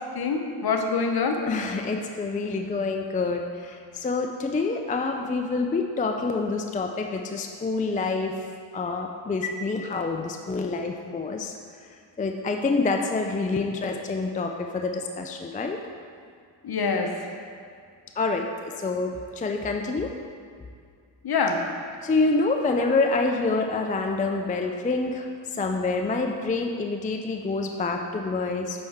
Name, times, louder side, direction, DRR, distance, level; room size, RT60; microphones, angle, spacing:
voice 1, 0.0-1.4 16.6-17.2 21.2-21.7, left 4 dB, 50° left, 3 dB, 0.9 m, -25 dB
voice 2, 1.5-8.3 8.7-11.6 12.2-15.8 18.2-20.1 22.0-28.9, left 3 dB, 15° left, 3 dB, 0.4 m, -27 dB
7.6 x 4.4 x 3.6 m, 2.2 s
cardioid pair, 50°, 49 cm